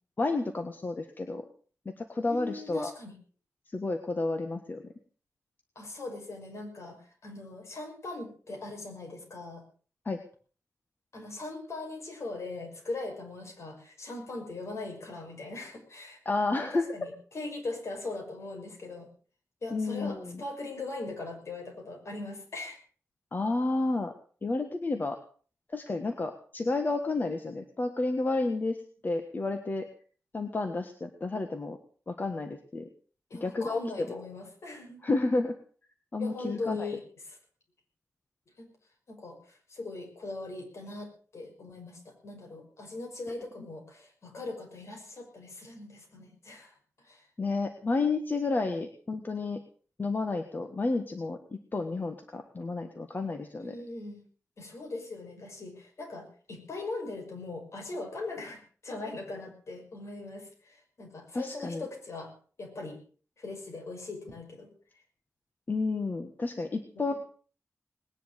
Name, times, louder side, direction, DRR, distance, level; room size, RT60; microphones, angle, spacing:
voice 1, 0.2-1.4 1.8-2.9 3.7-4.8 10.0-10.2 16.2-16.9 19.7-20.4 23.3-24.1 24.4-25.2 25.7-29.9 30.3-31.8 32.1-32.9 33.4-33.8 34.1-34.2 35.0-35.5 36.1-36.9 47.4-49.6 50.0-53.7 61.3-61.8 65.7-67.1, left 3 dB, 35° left, 6 dB, 1.5 m, -31 dB
voice 2, 2.3-3.1 5.8-9.6 11.1-16.2 16.6-19.1 19.6-22.8 33.3-35.0 36.2-37.4 38.6-38.7 39.1-46.7 47.0-47.3 53.6-54.2 54.6-62.3 62.6-63.0 63.4-64.7, left 2 dB, 60° left, 2 dB, 6.0 m, -40 dB
20.0 x 10.5 x 6.5 m, 0.43 s
wide cardioid pair, 160°, 5 cm